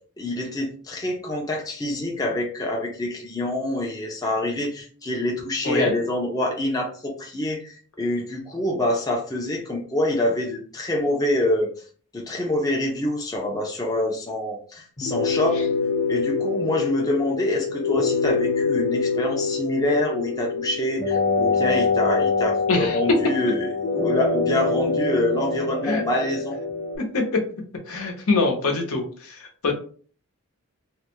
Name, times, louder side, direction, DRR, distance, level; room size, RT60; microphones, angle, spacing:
voice 1, 0.2-11.7 12.1-15.6 16.1-26.6, left 1 dB, 15° left, -1 dB, 0.5 m, -26 dB
sound 1, 15.0-27.0, left 4 dB, 35° left, 0.9 m, -25 dB
voice 2, 22.7-23.0 25.8-26.0 27.1-27.4 27.9-29.7, left 3 dB, 75° left, 2 dB, 0.9 m, -24 dB
3.2 x 2.2 x 2.9 m, 0.43 s
head